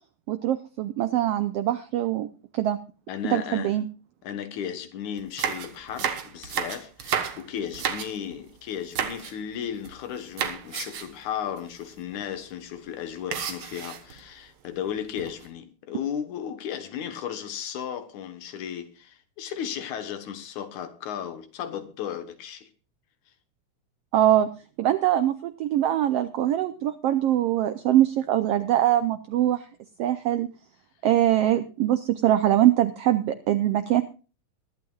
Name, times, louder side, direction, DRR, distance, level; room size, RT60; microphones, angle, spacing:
voice 1, 0.3-2.3 2.5-2.8 3.3-3.9 24.1-24.5 24.8-29.6 30.0-30.5 31.0-34.0, right 12 dB, 80° right, 1.4 m, -23 dB
voice 2, 3.1-3.7 4.2-22.7, left 9 dB, 75° left, 2.6 m, -35 dB
sound 1, 5.2-8.4 8.9-9.4 9.6-10.0 10.4-11.2 11.6-11.7 11.9-12.1 13.3-14.2 14.9-15.5, right 8 dB, 60° right, 2.1 m, -32 dB
21.5 x 11.5 x 2.4 m
omnidirectional pair, 3.5 m